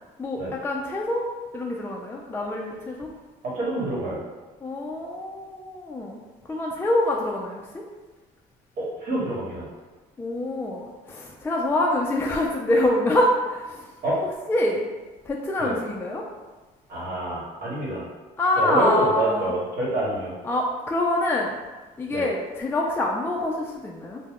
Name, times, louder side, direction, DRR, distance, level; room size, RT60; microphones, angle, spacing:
voice 1, 0.2-1.2 1.5-3.1 4.6-6.2 6.5-7.8 10.2-13.9 14.5-14.8 15.3-16.2 18.4-19.5 20.4-21.5 22.0-24.2, left 1 dB, 15° left, -1 dB, 0.3 m, -25 dB
voice 2, 3.4-4.2 8.8-9.7 14.0-14.2 15.6-15.8 16.9-18.0 18.6-20.3 22.1-22.3, right 1 dB, 60° right, -5 dB, 1.1 m, -27 dB
2.2 x 2.1 x 3.5 m, 1.2 s
supercardioid pair, 80°, 17 cm